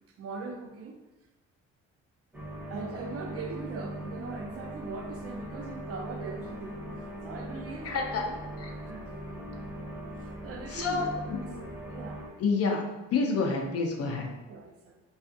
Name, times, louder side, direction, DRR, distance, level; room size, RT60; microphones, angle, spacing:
voice 1, 0.2-1.0 2.7-6.8 7.2-9.2 10.2-11.4 11.9-12.3 14.5-15.1, right 4 dB, 50° right, 4 dB, 0.4 m, -41 dB
sound 1, 2.3-12.3, right 1 dB, 5° right, 0.7 m, -40 dB
voice 2, 7.8-8.3 10.7-11.5 12.4-14.3, left 4 dB, 55° left, 2 dB, 0.5 m, -29 dB
2.4 x 2.4 x 2.5 m, 1.0 s
cardioid pair, 90°, 30 cm